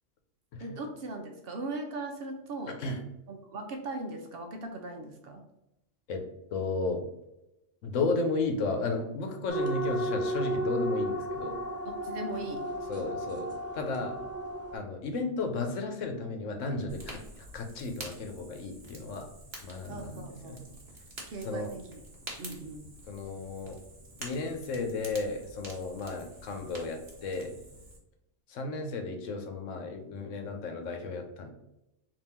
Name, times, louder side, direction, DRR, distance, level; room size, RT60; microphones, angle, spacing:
voice 1, 0.6-2.8 3.3-5.4 11.8-12.7 19.9-20.8 21.3-22.0 22.4-23.0, right 2 dB, 60° right, 4 dB, 0.7 m, -39 dB
voice 2, 6.5-7.0 7.8-11.6 12.9-14.2 14.7-19.3 19.6-20.6 21.4-21.7 23.1-23.8 24.2-27.6 28.5-31.5, left 3 dB, 80° left, 4 dB, 1.1 m, -34 dB
sound 1, 9.5-14.8, right 1 dB, 15° right, 0.6 m, -33 dB
Fire, 16.9-28.0, right 1 dB, 40° right, 1.1 m, -47 dB
3.6 x 2.8 x 4.2 m, 0.90 s
omnidirectional pair, 1.3 m